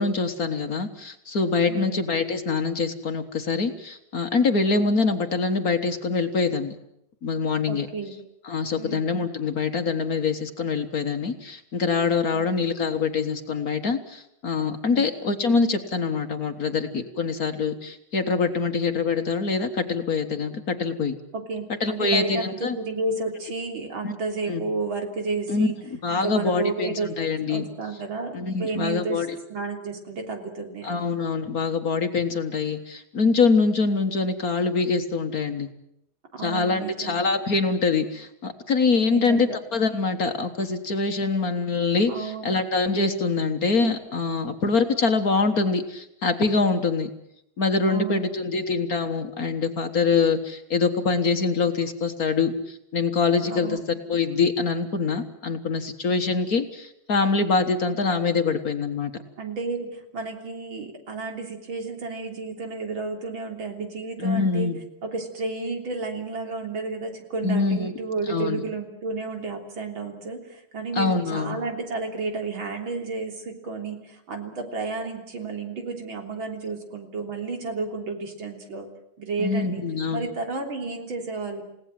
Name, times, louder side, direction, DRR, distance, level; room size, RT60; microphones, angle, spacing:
voice 1, 0.0-6.7 7.2-7.9 8.5-21.2 21.8-22.8 24.0-24.1 24.5-24.6 25.5-26.9 27.2-27.6 28.3-29.3 30.8-35.7 36.4-47.1 47.6-53.8 54.1-59.1 64.2-64.8 67.4-67.9 68.3-68.6 71.0-71.6 79.4-80.3, left 4 dB, 45° left, 7 dB, 1.8 m, -24 dB
voice 2, 7.7-8.1 8.8-9.1 12.3-12.6 14.9-15.1 21.3-22.5 22.8-25.8 26.1-27.1 27.5-31.0 36.3-37.2 39.1-39.6 42.1-42.6 47.9-48.7 53.5-53.8 59.4-64.7 65.0-78.9 79.2-79.8 80.1-81.6, right 3 dB, 70° right, 3 dB, 4.1 m, -32 dB
29.0 x 17.5 x 7.7 m, 0.79 s
omnidirectional pair, 2.3 m